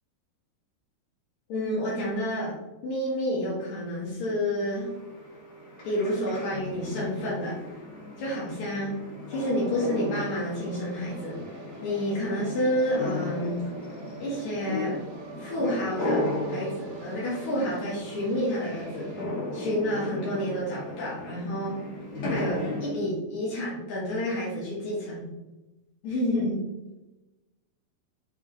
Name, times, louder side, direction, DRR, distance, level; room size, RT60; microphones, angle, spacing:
voice 1, 1.5-2.6 2.8-4.9 5.8-7.5 8.2-9.0 9.3-11.4 11.8-13.6 14.2-15.0 15.4-19.2 19.5-21.8 22.3-25.3 26.0-26.6, equal, 85° left, -7 dB, 1.6 m, -29 dB
sound 1, 4.7-22.9, left 2 dB, 60° left, 1.9 m, -36 dB
sound 2, 9.4-19.3, right 5 dB, 85° right, 2.7 m, -44 dB
7.2 x 3.4 x 3.8 m, 1.0 s
omnidirectional pair, 5.7 m